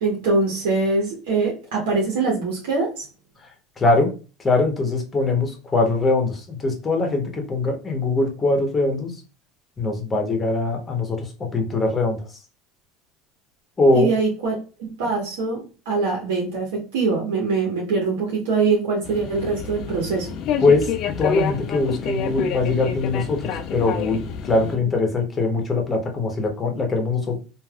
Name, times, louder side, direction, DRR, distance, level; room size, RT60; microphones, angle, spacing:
voice 1, 0.0-3.1 13.9-14.5 14.8-20.3, right 4 dB, 85° right, -2 dB, 1.1 m, -23 dB
voice 2, 3.8-4.1 4.4-9.1 9.8-11.2 11.5-12.2 13.8-14.1 20.6-20.9 21.2-27.4, left 3 dB, 25° left, 3 dB, 0.9 m, -22 dB
sound 1, 19.0-24.8, left 6 dB, 55° left, 0.4 m, -28 dB
3.3 x 2.5 x 2.3 m, 0.35 s
supercardioid pair, 115°, 0 cm